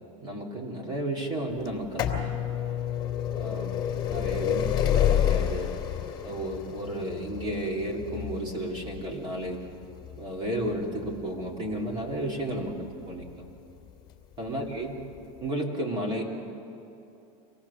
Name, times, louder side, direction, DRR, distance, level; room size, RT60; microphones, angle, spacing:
voice 1, 0.2-2.3 3.3-3.7 4.1-5.7 6.2-9.6 10.2-13.4 14.4-15.0 15.4-16.2, right 1 dB, 25° right, 0 dB, 3.3 m, -33 dB
sound 1, 1.7-13.3 14.1-14.2 15.2-15.3 15.5-15.6, left 10 dB, 25° left, 2.8 m, -29 dB
25.5 x 18.0 x 7.2 m, 2.8 s
supercardioid pair, 145°, 17 cm